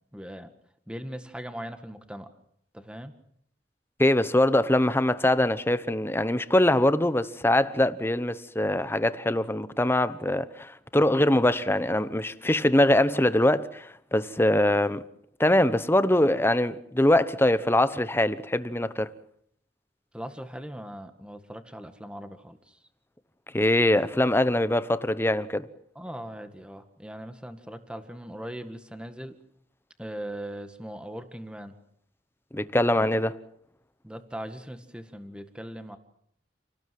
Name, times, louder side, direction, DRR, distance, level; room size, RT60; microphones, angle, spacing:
voice 1, 0.1-0.5 0.9-2.3 2.7-3.1 20.1-22.8 26.0-29.4 30.0-31.7 34.0-36.0, right 1 dB, 5° right, 1.8 m, -39 dB
voice 2, 4.0-15.0 15.4-19.1 23.5-25.7 32.5-33.4, left 1 dB, 15° left, 1.0 m, -23 dB
29.0 x 19.0 x 7.8 m
head